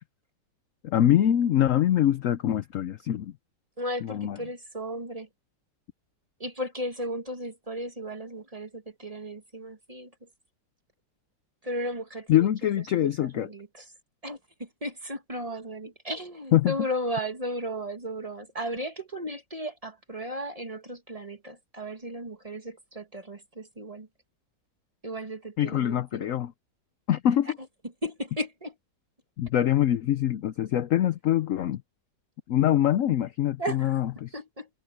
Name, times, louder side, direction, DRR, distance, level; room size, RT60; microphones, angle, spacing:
voice 1, 0.8-3.3 4.0-4.4 12.3-13.5 16.5-16.7 25.6-26.5 27.1-27.6 29.4-31.8 32.5-34.3, left 11 dB, 65° left, 0.8 m, -24 dB
voice 2, 3.8-5.3 6.4-10.1 11.6-12.5 12.9-13.9 14.2-24.1 25.0-26.3 28.0-28.7 33.6-33.9 34.3-34.7, equal, 20° right, 1.6 m, -35 dB
omnidirectional pair, 1.9 m